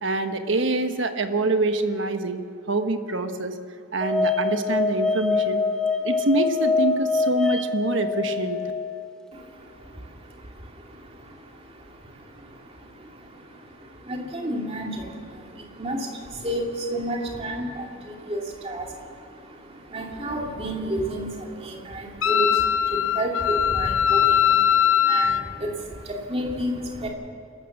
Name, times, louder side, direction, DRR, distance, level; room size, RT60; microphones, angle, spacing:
voice 1, 0.0-2.4 2.7-3.5 3.9-5.6 6.0-8.6, right 2 dB, 65° right, 7 dB, 1.3 m, -25 dB
sound 1, 4.0-9.1, left 4 dB, 5° left, 1.1 m, -25 dB
voice 2, 9.3-27.1, right 1 dB, 30° right, 0 dB, 2.6 m, -32 dB
Wind instrument woodwind instrument, 22.2-25.4, left 9 dB, 75° left, 0.6 m, -20 dB
28.0 x 13.0 x 7.3 m, 2.5 s
head